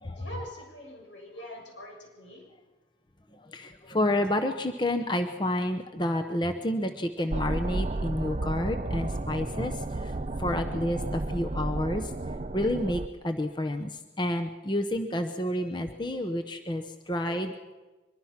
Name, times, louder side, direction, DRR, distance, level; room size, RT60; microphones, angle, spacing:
voice 1, 0.1-2.4 17.2-17.5, equal, 80° left, 0 dB, 7.2 m, -44 dB
voice 2, 3.3-12.1 12.5-17.5, left 1 dB, 25° left, 6 dB, 0.8 m, -30 dB
sound 1, 7.3-13.1, right 2 dB, 35° right, 0.6 m, -32 dB
23.5 x 22.5 x 5.9 m, 1.2 s
head